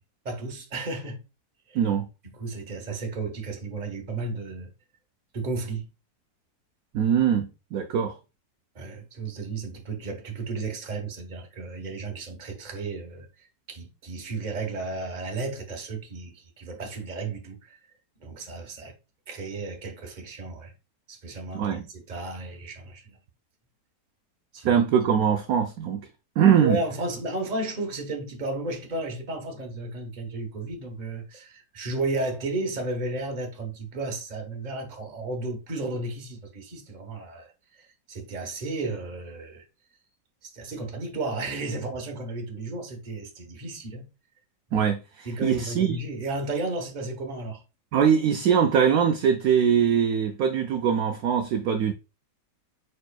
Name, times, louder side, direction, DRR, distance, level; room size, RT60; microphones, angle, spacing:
voice 1, 0.2-1.2 1.7-1.8 2.4-4.7 5.3-5.9 8.7-17.8 18.2-18.9 19.3-20.7 21.1-23.2 24.5-24.8 26.6-39.7 40.4-44.1 45.2-47.6, right 2 dB, 30° right, 0.9 m, -33 dB
voice 2, 1.7-2.1 6.9-8.2 21.5-21.8 24.6-26.1 26.4-26.8 44.7-46.0 47.9-51.9, right 8 dB, 70° right, 0.9 m, -22 dB
5.0 x 4.6 x 2.3 m
omnidirectional pair, 1.9 m